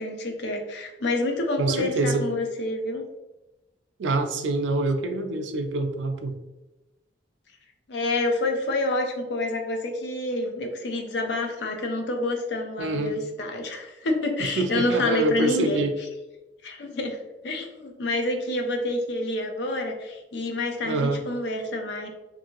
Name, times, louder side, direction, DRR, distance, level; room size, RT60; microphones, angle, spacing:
voice 1, 0.0-3.1 7.9-15.9 16.6-17.2 17.4-22.1, left 2 dB, 65° left, 3 dB, 0.5 m, -28 dB
voice 2, 1.6-2.2 4.0-6.3 12.8-13.2 14.6-15.9 20.9-21.2, right 2 dB, 80° right, 6 dB, 0.4 m, -25 dB
2.7 x 2.5 x 2.8 m, 1.0 s
head